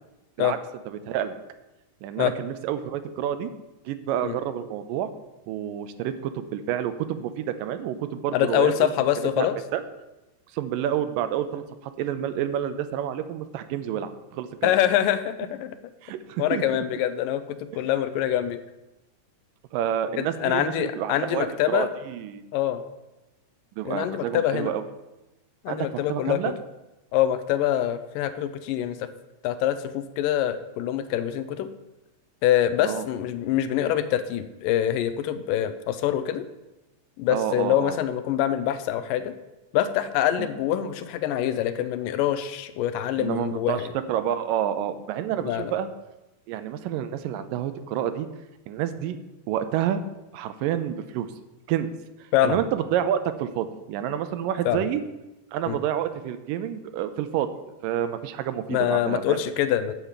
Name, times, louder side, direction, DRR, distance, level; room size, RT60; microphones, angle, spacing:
voice 1, 0.9-1.3 2.0-3.5 3.9-5.1 5.5-8.9 9.2-9.8 10.5-14.7 16.0-16.8 19.7-22.4 23.8-24.9 25.7-26.5 32.8-33.1 37.3-38.0 40.4-40.5 43.2-45.9 46.5-48.3 48.7-49.2 49.5-50.0 50.3-51.3 51.7-51.9 52.4-55.0 55.5-57.5 57.8-59.4, right 10 dB, 85° right, 11 dB, 2.4 m, -29 dB
voice 2, 8.3-9.6 14.6-15.8 16.4-18.6 20.2-21.9 22.5-22.8 23.9-24.7 25.6-26.5 27.1-29.1 29.4-31.7 32.4-36.4 37.2-39.4 39.7-43.9 45.4-45.7 52.3-52.6 54.7-54.8 55.7-55.8 58.7-59.9, left 11 dB, 85° left, 12 dB, 2.4 m, -25 dB
9.0 x 5.7 x 8.2 m, 1.0 s
omnidirectional pair, 3.8 m